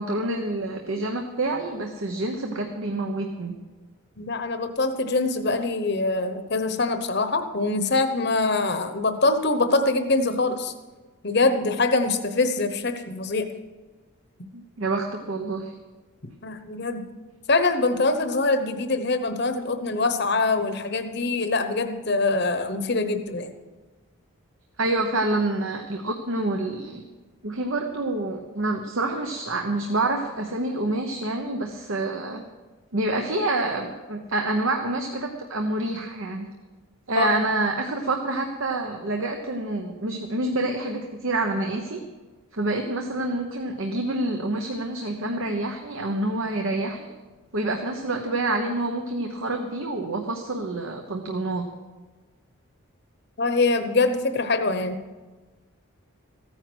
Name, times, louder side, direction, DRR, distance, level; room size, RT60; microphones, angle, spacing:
voice 1, 0.0-3.6 14.5-15.7 24.8-27.0 27.4-32.4 32.9-36.5 37.1-42.0 42.5-47.1 47.5-51.7, right 2 dB, 65° right, 4 dB, 1.0 m, -27 dB
voice 2, 4.2-10.7 11.2-13.5 16.4-17.0 17.5-23.5 37.1-37.3 53.4-55.0, left 3 dB, 50° left, 8 dB, 1.0 m, -24 dB
14.5 x 9.7 x 6.2 m, 1.3 s
head